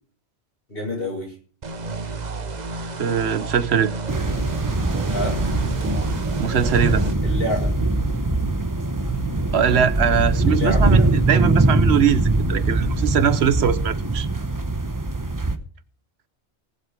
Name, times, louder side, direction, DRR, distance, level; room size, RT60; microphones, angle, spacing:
voice 1, 0.7-1.4 5.1-5.4 7.2-7.7 10.5-11.1, left 1 dB, 60° left, 6.4 m, -28 dB
sound 1, 1.6-7.1, right 3 dB, 40° right, 1.0 m, -31 dB
voice 2, 3.0-3.9 6.4-7.0 9.5-14.3, right 8 dB, 70° right, 1.1 m, -21 dB
sound 2, 4.1-15.6, right 2 dB, 20° right, 0.9 m, -22 dB
Bass guitar, 4.2-13.7, right 1 dB, 30° left, 4.8 m, -31 dB
19.0 x 7.6 x 5.2 m
omnidirectional pair, 1.1 m